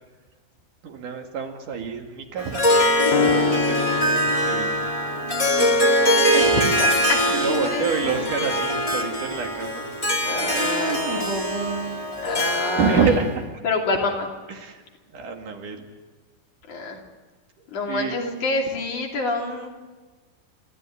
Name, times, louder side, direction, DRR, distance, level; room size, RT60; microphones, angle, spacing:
voice 1, 0.8-2.7 3.1-4.7 5.2-6.4 7.3-10.0 10.4-12.1 12.8-13.4 14.5-14.8 15.1-15.9 17.6-18.2, right 5 dB, 70° right, 3 dB, 3.6 m, -28 dB
Harp, 2.4-13.3, equal, 15° left, 1.2 m, -22 dB
Piano, 3.1-11.0, left 10 dB, 80° left, 2.7 m, -32 dB
voice 2, 6.3-7.2 7.5-8.3 10.2-11.3 12.2-13.1 13.6-14.3 16.7-17.0 17.7-19.7, left 3 dB, 60° left, 1 dB, 4.2 m, -27 dB
29.5 x 13.5 x 9.8 m, 1.3 s
omnidirectional pair, 3.9 m